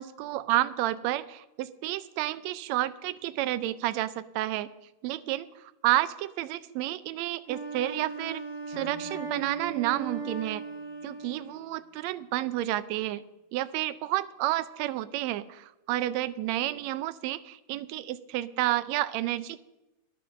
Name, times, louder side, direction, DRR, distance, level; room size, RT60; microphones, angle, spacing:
voice 1, 0.0-4.7 5.0-10.6 11.0-13.2 13.5-19.6, right 15 dB, 75° right, 14 dB, 1.7 m, -30 dB
Wind instrument woodwind instrument, 7.5-11.8, right 4 dB, 35° right, 2.3 m, -38 dB
sound 1, 8.7-12.7, left 4 dB, 75° left, 2.6 m, -54 dB
11.0 x 10.0 x 6.3 m, 0.94 s
omnidirectional pair, 3.4 m